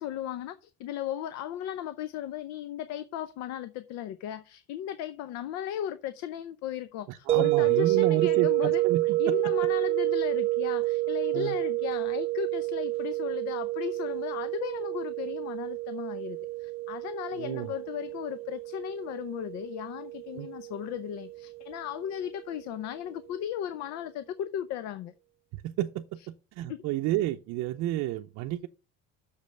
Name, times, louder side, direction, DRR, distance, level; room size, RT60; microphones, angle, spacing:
voice 1, 0.0-25.1 26.7-26.8, left 10 dB, 65° left, 0.7 m, -36 dB
voice 2, 7.1-9.3 11.3-11.6 17.4-17.7 20.3-20.5 25.5-26.0 26.5-28.7, right 14 dB, 65° right, 0.6 m, -30 dB
sound 1, 7.3-22.2, right 19 dB, 20° right, 0.3 m, -29 dB
6.7 x 5.3 x 6.5 m
cardioid pair, 175°, 29 cm